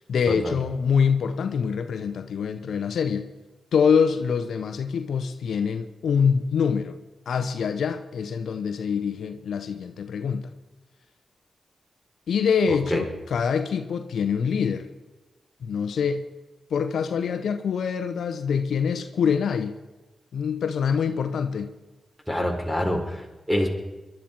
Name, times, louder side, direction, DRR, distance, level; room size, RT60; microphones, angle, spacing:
voice 1, 0.0-3.3 3.7-7.0 7.3-10.5 12.3-14.9 15.6-16.3 16.7-19.8 20.3-21.7, left 6 dB, 80° left, 0.8 m, -25 dB
voice 2, 12.7-13.0 22.3-23.7, left 1 dB, 5° left, 4.3 m, -26 dB
21.5 x 12.0 x 4.5 m
cardioid pair, 50°, 0 cm